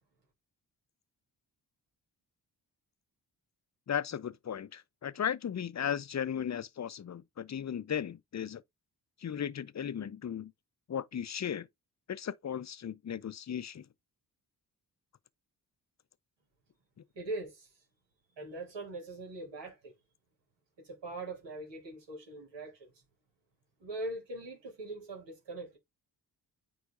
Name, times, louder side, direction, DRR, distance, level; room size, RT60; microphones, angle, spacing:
voice 1, 3.9-8.6 9.2-10.5 10.9-11.7 12.1-13.8, left 8 dB, 40° left, 0.6 m, -36 dB
voice 2, 17.1-17.8 18.4-19.9 20.8-23.0 23.8-25.8, right 2 dB, 80° right, 3.5 m, -42 dB
9.5 x 4.0 x 2.5 m
cardioid pair, 50°, 43 cm